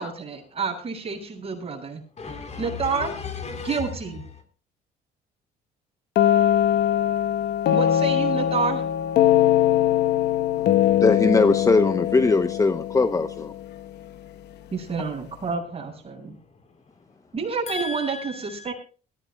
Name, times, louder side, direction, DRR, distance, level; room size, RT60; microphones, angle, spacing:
voice 1, 0.0-2.0 2.6-3.1 3.6-4.2 7.7-8.8 14.7-16.3 17.3-18.7, right 5 dB, 35° right, 7.9 m, -29 dB
voice 2, 1.8-4.4 16.0-17.3 17.7-18.7, left 4 dB, 40° left, 4.5 m, -37 dB
sound 1, 6.2-13.9, left 11 dB, 70° left, 1.3 m, -21 dB
voice 3, 10.9-13.5, left 3 dB, 20° left, 0.9 m, -20 dB
21.5 x 16.5 x 2.3 m
cardioid pair, 90°, 18 cm